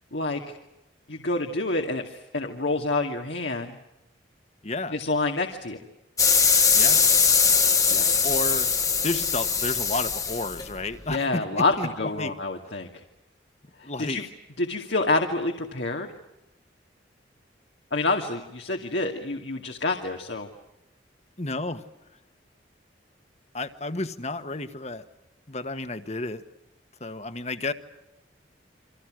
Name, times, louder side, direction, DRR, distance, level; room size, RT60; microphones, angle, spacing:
voice 1, 0.1-0.5 1.1-3.7 4.9-5.8 7.9-8.3 11.1-12.9 13.8-14.2 14.6-16.1 17.9-20.5, left 2 dB, 75° left, 2 dB, 2.4 m, -28 dB
voice 2, 4.6-5.0 6.7-7.1 8.2-8.7 9.0-11.9 12.2-12.3 13.8-14.3 21.4-21.8 23.5-25.0 25.5-26.4 27.0-27.7, left 2 dB, 35° left, 10 dB, 1.6 m, -31 dB
sound 1, 6.2-11.1, left 5 dB, 20° left, 1.5 m, -21 dB
29.5 x 25.5 x 6.4 m, 0.90 s
head